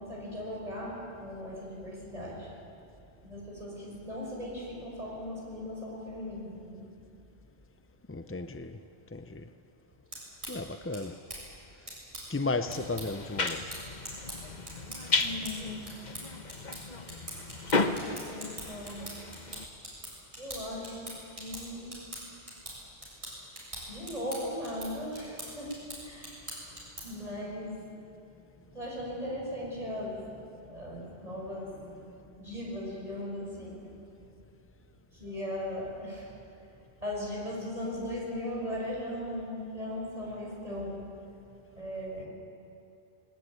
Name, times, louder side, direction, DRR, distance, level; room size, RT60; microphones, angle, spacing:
voice 1, 0.0-2.5 3.2-6.9 15.1-16.0 18.1-19.1 20.4-21.1 21.4-22.0 23.9-26.5 27.0-27.9 28.6-32.0 32.4-34.0 35.1-36.3 37.0-41.1 41.7-42.3, left 1 dB, 35° right, -3 dB, 6.6 m, -38 dB
voice 2, 8.1-8.8 9.1-9.5 10.5-11.2 12.3-13.7, left 3 dB, 20° left, 9 dB, 0.4 m, -34 dB
sound 1, 9.9-27.3, right 1 dB, 90° right, 7.9 m, -44 dB
sound 2, 12.7-19.7, left 3 dB, 45° left, 1.2 m, -34 dB
20.5 x 20.5 x 9.4 m, 2.7 s
omnidirectional pair, 1.1 m